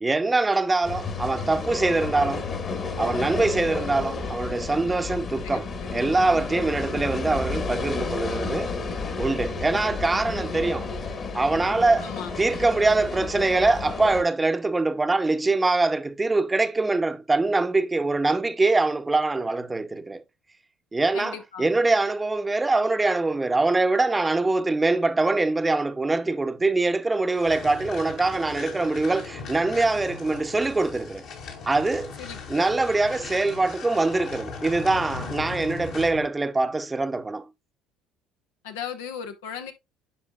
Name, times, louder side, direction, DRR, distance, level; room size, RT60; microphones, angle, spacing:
voice 1, 0.0-2.4 3.0-5.7 5.9-8.7 9.2-10.9 11.3-12.1 12.4-20.2 20.9-31.2 31.7-32.1 32.5-37.5, right 3 dB, 20° right, 0.8 m, -23 dB
sound 1, 0.8-14.2, left 4 dB, 45° left, 1.7 m, -31 dB
voice 2, 5.4-5.9 12.0-12.3 21.1-21.7 32.2-32.7 38.6-39.7, left 8 dB, 85° left, 1.0 m, -37 dB
sound 2, 27.3-36.3, left 5 dB, 65° left, 2.6 m, -38 dB
9.9 x 5.0 x 2.4 m
hypercardioid pair, 70°, 0 cm